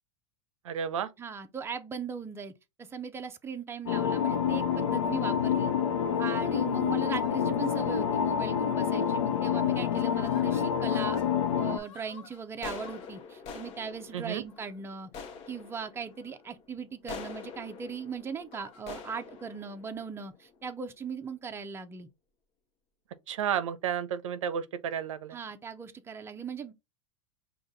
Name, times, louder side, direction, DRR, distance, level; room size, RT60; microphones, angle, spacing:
voice 1, 0.7-1.1 14.1-14.4 23.3-25.4, right 8 dB, 80° right, 0.6 m, -32 dB
voice 2, 1.2-2.5 2.8-5.7 6.2-11.2 11.6-22.1 25.3-26.7, right 6 dB, 15° right, 0.6 m, -39 dB
sound 1, 3.9-11.8, left 8 dB, 80° left, 0.8 m, -27 dB
sound 2, 5.2-5.6 6.1-6.4 7.1-7.3 7.6-7.7 8.0-8.4 9.0-9.3 9.6-11.3 11.7-20.9, left 5 dB, 40° left, 1.0 m, -47 dB
5.0 x 2.4 x 3.7 m
hypercardioid pair, 105°, 16 cm